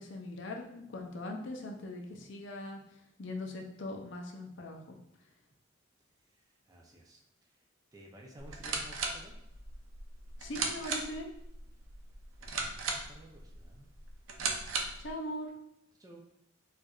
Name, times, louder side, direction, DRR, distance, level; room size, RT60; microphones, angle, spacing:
voice 1, 0.0-5.0 10.4-11.3 15.0-15.6, left 1 dB, 60° left, 2 dB, 0.5 m, -41 dB
voice 2, 6.3-7.6 7.9-9.4 12.4-13.9 16.0-16.2, right 1 dB, 20° right, -1 dB, 0.4 m, -54 dB
sound 1, 8.4-15.1, right 4 dB, 85° right, 0.5 m, -38 dB
4.3 x 2.5 x 2.3 m, 0.78 s
head